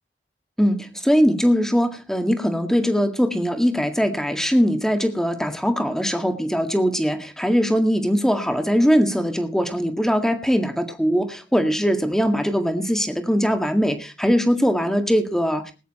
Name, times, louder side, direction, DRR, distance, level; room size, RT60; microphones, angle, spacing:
voice 1, 0.6-15.7, equal, 5° left, 7 dB, 1.9 m, -21 dB
19.5 x 10.0 x 4.3 m, 0.34 s
head